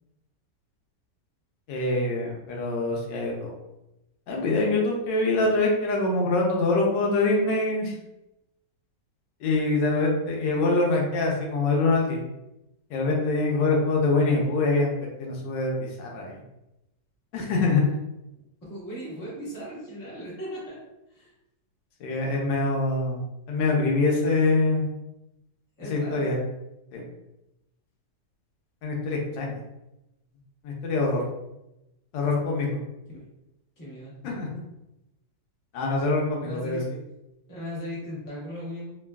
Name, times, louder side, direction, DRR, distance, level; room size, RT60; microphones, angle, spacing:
voice 1, 1.7-3.5 4.3-7.9 9.4-12.2 12.9-14.9 15.2-16.4 17.3-17.8 22.0-23.2 23.5-24.9 25.9-26.4 26.9-27.0 28.8-29.6 30.6-31.2 32.1-32.7 34.2-34.5 35.7-36.8, left 3 dB, 90° left, -1 dB, 1.4 m, -24 dB
voice 2, 18.6-20.8 21.1-21.3 25.8-26.5 31.1-31.2 33.1-33.2 33.8-34.1 36.4-36.8 37.5-39.0, equal, 20° left, -7 dB, 0.6 m, -37 dB
3.3 x 2.2 x 2.2 m, 0.92 s
omnidirectional pair, 1.9 m